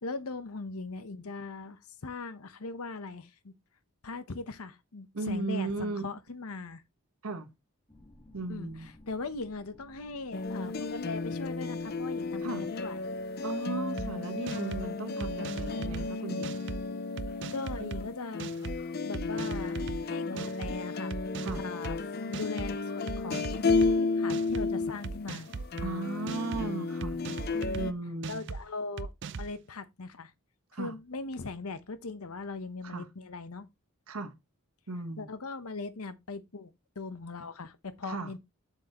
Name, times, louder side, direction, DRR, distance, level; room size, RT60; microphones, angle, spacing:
voice 1, 0.0-3.5 4.0-6.8 8.5-8.7 9.1-13.2 17.5-18.5 19.0-21.1 21.6-23.7 24.0-25.5 27.5-28.0 28.3-29.1 29.4-30.3 30.8-33.7 35.2-36.7 37.0-38.4, left 3 dB, 80° left, 0.9 m, -40 dB
voice 2, 5.1-6.1 7.2-7.5 8.3-8.9 12.4-12.7 13.4-16.6 17.8-18.1 20.3-20.5 21.4-21.6 25.8-27.2 27.7-28.4 30.7-30.9 32.8-33.1 34.1-34.3 34.9-35.3 38.0-38.3, right 3 dB, 75° right, 1.3 m, -36 dB
sound 1, 7.9-15.1, left 1 dB, 15° left, 1.9 m, -59 dB
sound 2, 10.3-27.9, left 3 dB, 45° left, 0.5 m, -33 dB
sound 3, 14.0-14.1 14.5-14.9 15.2-16.1 16.4-16.8 17.2-18.0 18.4-18.8 19.1-20.0 20.4-20.7 21.1-22.0 22.3-22.7 23.1-23.9 24.3-24.7 25.0-25.9 26.3-26.6 27.0-27.9 28.2-28.6 29.0-29.5, right 4 dB, 55° right, 0.5 m, -38 dB
7.6 x 6.3 x 2.9 m
head